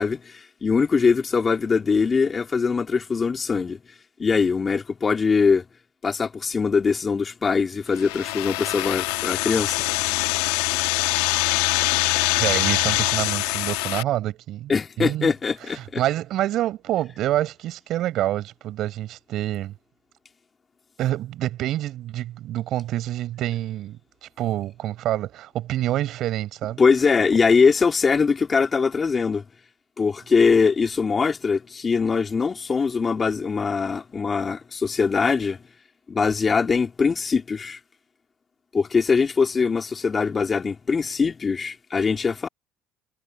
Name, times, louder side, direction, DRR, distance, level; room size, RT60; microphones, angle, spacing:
voice 1, 0.0-3.8 4.2-5.6 6.0-9.8 14.7-16.0 26.8-29.4 30.0-35.6 36.1-37.8 38.7-42.5, left 5 dB, 35° left, 3.1 m, -22 dB
sound 1, 7.9-14.0, left 22 dB, 80° left, 1.8 m, -24 dB
voice 2, 12.4-14.7 15.0-15.3 15.7-19.7 21.0-26.8, right 13 dB, 65° right, 6.4 m, -27 dB
hypercardioid pair, 65°, 0 cm